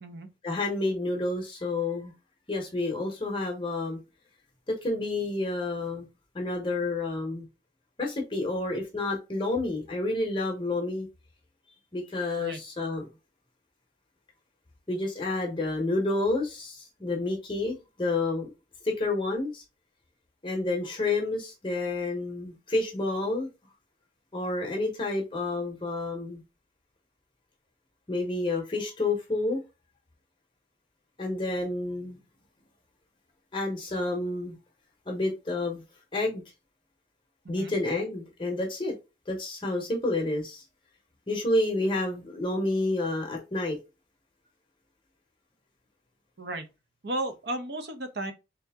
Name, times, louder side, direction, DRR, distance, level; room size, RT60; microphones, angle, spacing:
voice 1, 0.4-2.1 2.5-4.0 4.7-6.1 6.3-7.5 8.0-11.1 11.9-13.1 14.9-18.5 18.8-19.6 20.4-23.5 24.3-26.4 28.1-29.6 31.2-32.2 33.5-34.6 35.1-35.8 36.1-36.4 37.5-38.9 39.3-40.6 41.3-43.8, left 2 dB, 25° left, 0.8 m, -29 dB
voice 2, 47.0-48.3, right 1 dB, 60° right, 0.7 m, -34 dB
3.4 x 2.7 x 3.4 m
head